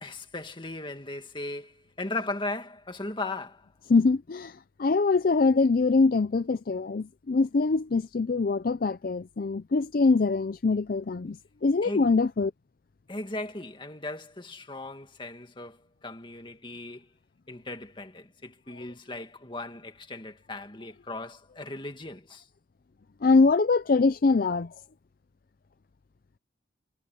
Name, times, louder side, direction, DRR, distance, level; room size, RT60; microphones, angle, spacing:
voice 1, 0.0-3.7 11.8-12.1 13.1-17.1 17.5-22.5, left 2 dB, 25° left, 2.0 m, -37 dB
voice 2, 3.9-12.5 23.2-24.7, left 3 dB, 45° left, 0.5 m, -23 dB
head